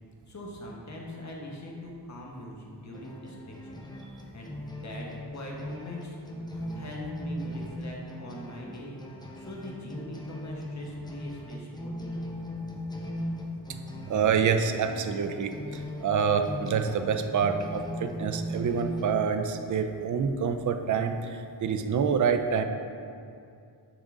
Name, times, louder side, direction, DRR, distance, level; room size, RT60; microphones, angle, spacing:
voice 1, 0.3-3.8 4.3-4.5 4.8-5.1 5.3-6.2 6.4-9.0 9.3-12.3, left 1 dB, 40° left, -2 dB, 1.2 m, -42 dB
sound 1, 2.9-19.0, equal, 10° left, 0.7 m, -39 dB
voice 2, 14.1-22.6, right 6 dB, 45° right, 7 dB, 0.5 m, -27 dB
10.0 x 3.8 x 3.6 m, 2.4 s
wide cardioid pair, 95°, 42 cm